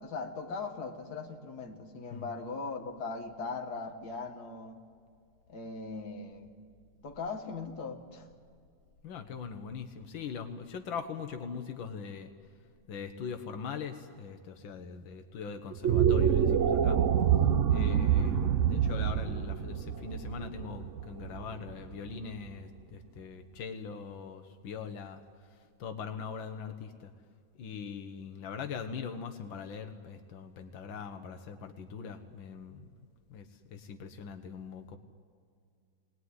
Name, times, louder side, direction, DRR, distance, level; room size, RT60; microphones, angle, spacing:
voice 1, 0.0-4.8 5.5-6.6 7.0-8.3, left 4 dB, 55° left, 4 dB, 2.2 m, -39 dB
voice 2, 9.0-12.3 12.9-17.0 17.7-25.2 25.8-27.1 27.6-32.9 33.3-35.0, left 6 dB, 85° left, 7 dB, 1.8 m, -41 dB
sound 1, 15.7-22.1, right 8 dB, 55° right, 0.9 m, -27 dB
23.0 x 19.5 x 9.7 m, 2.3 s
omnidirectional pair, 2.1 m